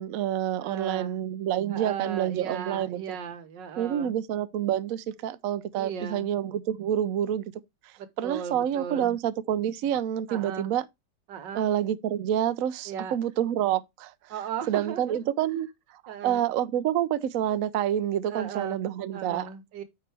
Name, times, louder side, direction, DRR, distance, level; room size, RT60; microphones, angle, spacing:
voice 1, 0.0-3.2 3.8-7.4 8.2-10.8 11.5-14.1 14.7-15.7 16.0-19.5, right 10 dB, 65° right, 0.9 m, -28 dB
voice 2, 0.6-1.2 1.7-4.1 5.7-6.3 8.0-9.2 10.3-10.7 11.3-11.7 12.9-13.1 14.3-15.3 16.1-16.5 18.3-18.8 19.1-19.8, right 7 dB, 80° right, 1.7 m, -37 dB
9.0 x 5.1 x 3.3 m
omnidirectional pair, 1.9 m